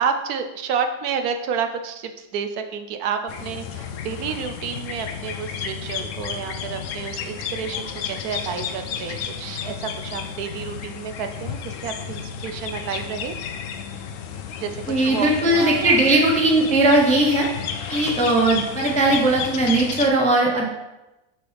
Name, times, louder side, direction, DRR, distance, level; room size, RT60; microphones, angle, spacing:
voice 1, 0.0-13.3 14.6-16.0, right 7 dB, 75° right, 7 dB, 1.1 m, -30 dB
sound 1, 3.3-20.1, left 7 dB, 70° left, 0.8 m, -32 dB
voice 2, 14.9-17.5 17.9-20.7, right 2 dB, 10° left, -1 dB, 0.5 m, -18 dB
5.8 x 5.5 x 3.4 m, 0.99 s
omnidirectional pair, 1.6 m